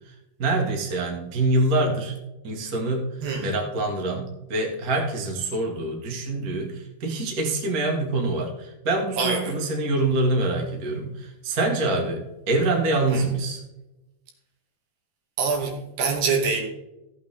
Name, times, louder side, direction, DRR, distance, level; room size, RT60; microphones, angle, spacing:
voice 1, 0.4-2.1 2.4-13.6, right 2 dB, 35° right, 2 dB, 1.5 m, -25 dB
voice 2, 3.2-3.6 9.2-9.5 13.1-13.3 15.4-16.6, right 5 dB, 75° right, 1 dB, 4.1 m, -25 dB
15.0 x 8.3 x 3.6 m, 0.95 s
omnidirectional pair, 4.8 m